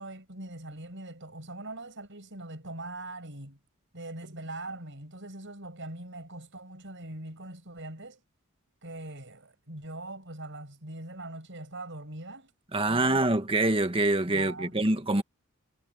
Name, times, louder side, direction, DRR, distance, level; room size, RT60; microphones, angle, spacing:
voice 1, 0.0-3.6 3.9-8.2 8.8-12.5 12.9-13.2 14.3-14.8, right 2 dB, 55° right, 7.5 m, -42 dB
voice 2, 12.7-15.2, right 2 dB, 25° right, 1.5 m, -25 dB
head